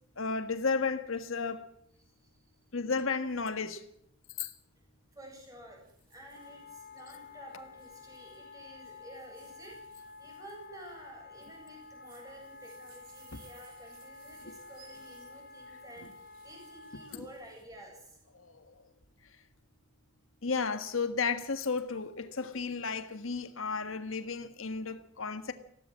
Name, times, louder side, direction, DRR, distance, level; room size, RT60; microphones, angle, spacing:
voice 1, 0.2-1.7 2.7-3.8 4.4-4.5 14.5-14.6 17.1-17.2 18.3-18.7 20.4-25.5, left 4 dB, 80° left, 1.6 m, -33 dB
voice 2, 5.1-5.8 6.1-18.2, right 1 dB, 15° right, 7.9 m, -51 dB
sound 1, 5.8-17.6, right 6 dB, 45° right, 6.1 m, -63 dB
Wind instrument woodwind instrument, 6.3-17.1, left 4 dB, 50° left, 4.0 m, -51 dB
20.0 x 17.0 x 7.5 m
head